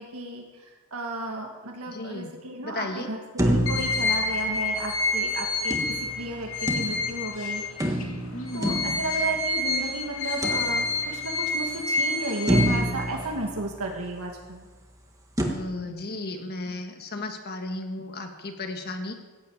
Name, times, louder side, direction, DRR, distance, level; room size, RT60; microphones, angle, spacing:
voice 1, 0.0-8.0 8.5-14.7, right 1 dB, 85° right, 1 dB, 2.0 m, -34 dB
voice 2, 1.9-2.3 2.6-3.1 8.3-8.9 15.4-19.1, left 2 dB, 45° left, 5 dB, 1.6 m, -34 dB
sound 1, 3.4-5.0 5.7-7.3 7.8-9.7 10.4-11.3 11.8-11.9 12.5-14.2 15.4-15.5, right 1 dB, 15° right, 1.6 m, -28 dB
Calesita sonido metal, 3.7-8.0 8.4-13.3, left 2 dB, 75° left, 2.5 m, -28 dB
15.0 x 7.9 x 8.8 m, 1.2 s
head